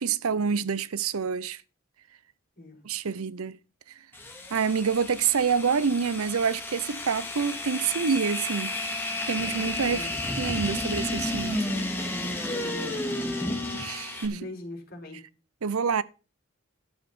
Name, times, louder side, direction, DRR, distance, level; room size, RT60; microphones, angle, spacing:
voice 1, 0.0-1.6 2.8-3.6 4.5-9.0 9.3-10.1 10.4-11.7 13.7-14.5 15.6-16.0, right 6 dB, 80° right, 0.6 m, -27 dB
sound 1, 4.1-14.3, left 1 dB, 10° left, 2.5 m, -32 dB
voice 2, 12.0-13.5 14.3-15.2, left 1 dB, 45° left, 4.6 m, -41 dB
12.5 x 7.1 x 6.0 m
head